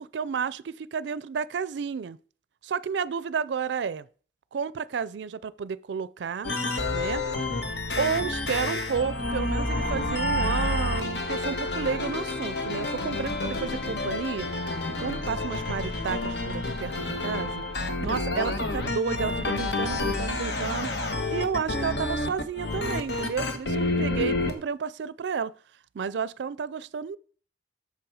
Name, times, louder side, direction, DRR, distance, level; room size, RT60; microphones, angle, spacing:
voice 1, 0.0-2.2 2.6-4.1 4.5-6.5 6.9-7.2 8.0-14.5 15.0-17.6 18.0-20.9 21.3-25.5 25.9-27.2, right 6 dB, 85° right, 0.4 m, -31 dB
sound 1, 6.4-24.5, left 2 dB, 75° left, 1.2 m, -29 dB
7.7 x 6.8 x 4.8 m
head